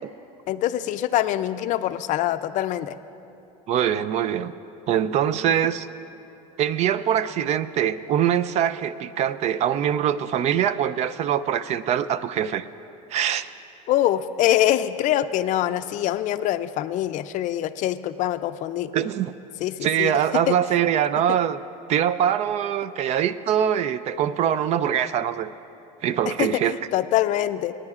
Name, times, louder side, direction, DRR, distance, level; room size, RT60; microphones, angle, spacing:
voice 1, 0.5-3.0 13.9-18.9 19.6-20.1 20.5-20.6 26.4-27.7, left 13 dB, 50° left, 12 dB, 0.4 m, -24 dB
voice 2, 3.7-4.5 4.9-5.9 6.6-12.6 13.1-13.5 18.9-19.3 19.8-21.6 21.9-25.5 26.0-26.8, right 9 dB, 40° right, 15 dB, 0.4 m, -23 dB
27.0 x 9.8 x 2.4 m, 2.8 s
supercardioid pair, 120°, 17 cm